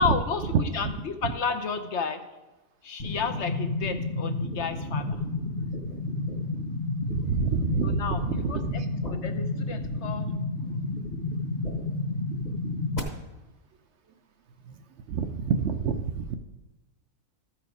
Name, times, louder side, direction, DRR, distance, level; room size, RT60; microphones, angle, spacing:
voice 1, 0.0-2.2 2.8-5.2 7.8-8.8 9.1-10.3, left 5 dB, 60° left, 7 dB, 0.9 m, -31 dB
sound 1, 3.0-13.0, left 2 dB, 30° left, 1.2 m, -31 dB
voice 2, 7.1-8.9 14.7-14.8 15.1-16.4, right 6 dB, 65° right, 8 dB, 0.7 m, -27 dB
13.5 x 4.7 x 4.8 m, 1.1 s
omnidirectional pair, 1.4 m